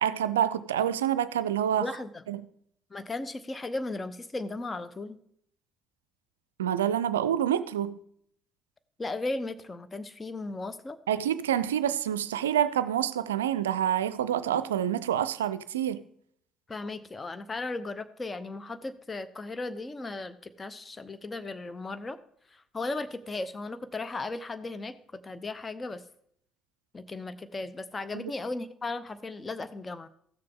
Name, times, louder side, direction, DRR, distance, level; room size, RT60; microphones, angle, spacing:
voice 1, 0.0-1.9 2.3-2.4 6.6-8.0 11.1-16.0 28.1-28.3, right 10 dB, 85° right, 0.3 m, -27 dB
voice 2, 1.8-2.2 2.9-5.2 9.0-11.0 16.7-22.2 22.5-25.0 25.2-26.0 26.9-30.1, left 2 dB, 30° left, 0.8 m, -36 dB
15.0 x 6.7 x 3.6 m
hypercardioid pair, 55°, 0 cm